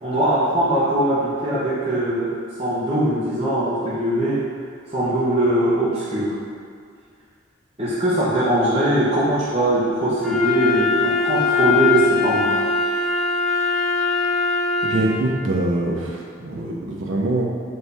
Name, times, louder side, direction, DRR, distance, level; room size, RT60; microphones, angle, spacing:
voice 1, 0.0-2.3 2.6-4.4 4.9-6.4 7.8-12.6, right 1 dB, 30° right, -11 dB, 0.8 m, -21 dB
Wind instrument woodwind instrument, 10.2-15.3, left 4 dB, ahead, 0.3 m, -21 dB
voice 2, 14.8-17.4, right 1 dB, 85° right, -1 dB, 0.7 m, -24 dB
4.5 x 3.3 x 3.4 m, 2.1 s
head